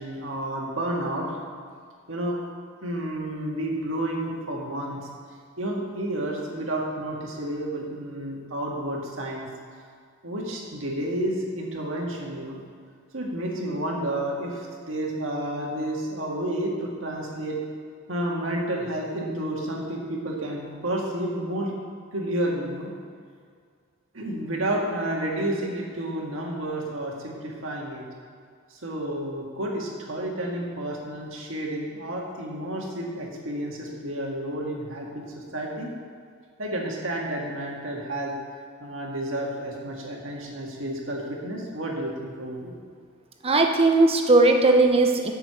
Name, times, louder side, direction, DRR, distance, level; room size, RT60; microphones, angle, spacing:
voice 1, 0.0-1.4 2.1-2.4 2.8-5.1 5.6-9.5 10.2-12.6 13.1-17.6 18.1-21.7 22.1-22.9 24.1-28.0 28.7-35.9 36.6-38.3 38.8-42.7, right 1 dB, 75° right, -1 dB, 1.8 m, -30 dB
voice 2, 43.4-45.3, right 2 dB, 30° right, 3 dB, 0.8 m, -18 dB
7.7 x 6.8 x 6.8 m, 2.1 s
head